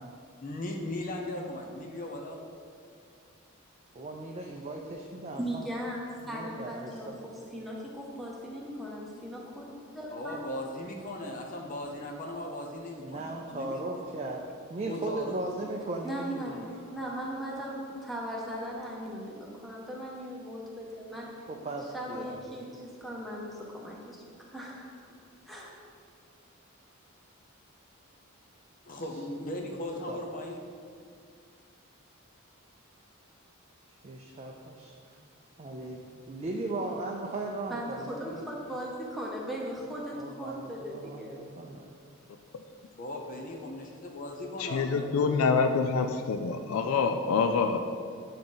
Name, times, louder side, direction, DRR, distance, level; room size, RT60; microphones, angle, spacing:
voice 1, 0.4-2.4 10.1-14.1 14.9-15.9 28.9-30.6 42.9-45.2, left 1 dB, 40° left, 1 dB, 0.6 m, -38 dB
voice 2, 3.9-5.6 6.2-7.1 13.0-14.4 14.7-16.6 21.5-22.7 30.1-30.3 34.0-34.9 35.6-36.0 36.3-38.4 40.2-41.9, right 2 dB, 30° right, 0 dB, 0.4 m, -37 dB
voice 3, 5.3-6.0 6.3-7.1 7.5-9.7 9.9-10.4 16.0-16.6 16.9-21.3 21.9-24.9 25.5-25.7 37.7-41.4, equal, ahead, -3 dB, 0.9 m, -38 dB
voice 4, 44.6-47.8, left 5 dB, 85° left, 7 dB, 0.4 m, -26 dB
8.7 x 3.7 x 3.9 m, 2.3 s
head